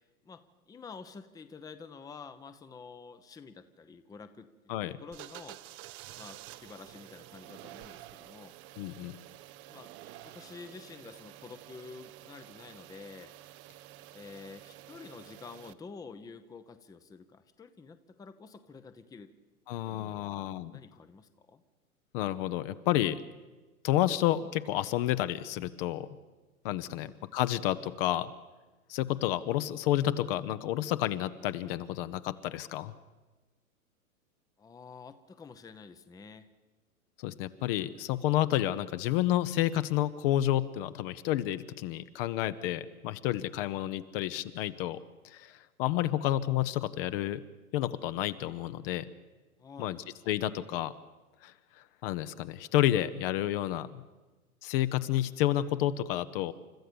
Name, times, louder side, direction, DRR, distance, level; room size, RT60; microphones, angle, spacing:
voice 1, 0.2-4.5 4.8-5.6 6.2-8.5 9.7-9.9 10.2-13.3 14.1-19.3 19.7-21.6 26.9-27.2 34.6-36.5 49.6-50.0, left 5 dB, 10° left, 10 dB, 0.8 m, -49 dB
sound 1, 5.1-15.7, right 15 dB, 25° right, 0.7 m, -50 dB
voice 2, 8.8-9.2 19.7-20.7 22.1-23.2 23.8-26.1 26.6-28.3 28.9-32.9 37.2-45.0 45.2-47.4 47.7-49.1 49.8-50.0 50.3-50.9 51.4-54.0 54.6-56.5, left 13 dB, 40° left, 12 dB, 0.9 m, -30 dB
29.5 x 13.5 x 6.9 m, 1.2 s
hypercardioid pair, 110°, 43 cm